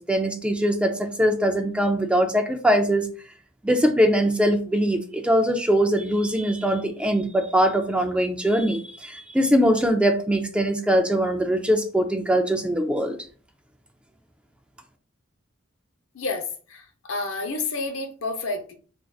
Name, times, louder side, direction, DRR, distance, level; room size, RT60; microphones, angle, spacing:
voice 1, 0.0-3.1 3.6-13.2, equal, 5° right, 0.3 m, -22 dB
voice 2, 16.1-18.7, left 3 dB, 75° left, 0.7 m, -30 dB
4.5 x 2.5 x 2.3 m
head